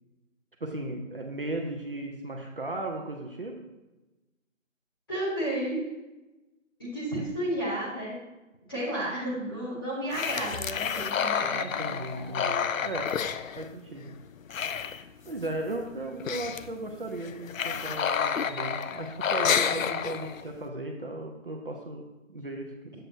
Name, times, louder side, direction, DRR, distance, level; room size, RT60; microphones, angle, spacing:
voice 1, 0.6-3.6 11.4-13.2 13.6-14.2 14.9-23.1, right 2 dB, 45° right, 0 dB, 0.7 m, -36 dB
voice 2, 5.1-5.9 6.8-8.2 8.7-12.4, right 1 dB, 15° left, -9 dB, 1.9 m, -32 dB
sound 1, 10.1-14.1 14.4-15.5 15.8-15.9 16.1-16.7 17.2-20.6, left 7 dB, 85° left, 0.6 m, -30 dB
8.1 x 7.7 x 2.6 m, 1.1 s
hypercardioid pair, 180°, 39 cm